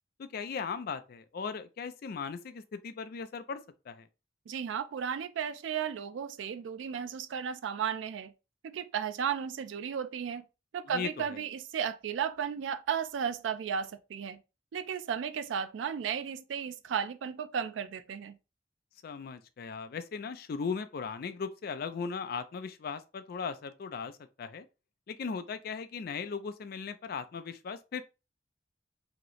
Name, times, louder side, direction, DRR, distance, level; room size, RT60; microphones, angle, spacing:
voice 1, 0.2-3.6 3.9-4.1 10.8-11.4 19.0-24.1 24.4-24.7 25.1-28.0, left 5 dB, 55° left, 0.4 m, -38 dB
voice 2, 4.5-8.3 8.6-10.5 10.7-14.4 14.7-18.4, right 7 dB, 85° right, 0.3 m, -34 dB
2.9 x 2.0 x 3.8 m
head